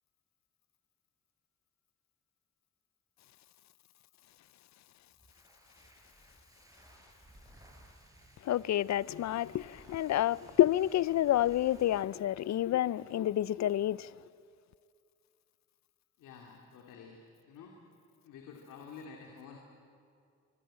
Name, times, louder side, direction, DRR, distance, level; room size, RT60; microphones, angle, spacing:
sound 1, 5.1-12.1, right 1 dB, 10° right, 6.2 m, -59 dB
voice 1, 8.4-14.1, left 12 dB, 65° left, 0.5 m, -29 dB
voice 2, 16.2-17.2 17.5-17.7 18.2-19.6, left 6 dB, 90° left, 2.6 m, -50 dB
24.0 x 23.5 x 8.8 m
cardioid pair, 65°, 31 cm